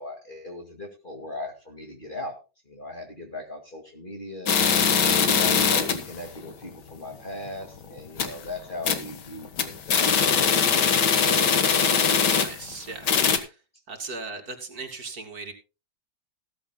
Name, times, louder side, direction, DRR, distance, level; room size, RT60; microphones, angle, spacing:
voice 1, 0.0-2.4 2.7-4.5 5.2-11.0, left 2 dB, 30° left, 3 dB, 2.3 m, -38 dB
sound 1, 4.5-6.1 6.5-6.6 6.9-7.0 7.5-7.7 8.0-8.4 8.9-9.2 9.5-12.7 13.0-13.4, left 6 dB, 85° left, 2.0 m, -21 dB
voice 2, 12.4-13.1 13.4-13.6 13.9-15.5, right 3 dB, 60° right, 5 dB, 2.8 m, -38 dB
16.0 x 14.0 x 2.2 m, 0.30 s
omnidirectional pair, 1.8 m